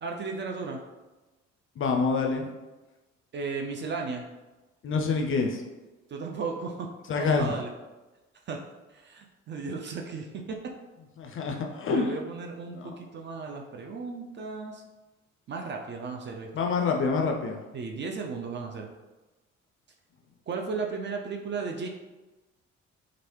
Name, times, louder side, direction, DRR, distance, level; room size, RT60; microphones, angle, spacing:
voice 1, 0.0-0.8 3.3-4.2 6.1-6.9 7.2-7.7 8.5-8.6 8.9-10.6 11.9-14.8 15.5-16.5 17.7-18.9 20.5-21.9, right 4 dB, 30° right, 2 dB, 0.4 m, -35 dB
voice 2, 1.8-2.5 4.8-5.6 7.1-7.6 11.2-12.1 12.7-13.0 16.5-17.6, left 4 dB, 35° left, 2 dB, 0.4 m, -27 dB
3.0 x 2.5 x 2.9 m, 1.1 s
figure-of-eight pair, 45°, 38 cm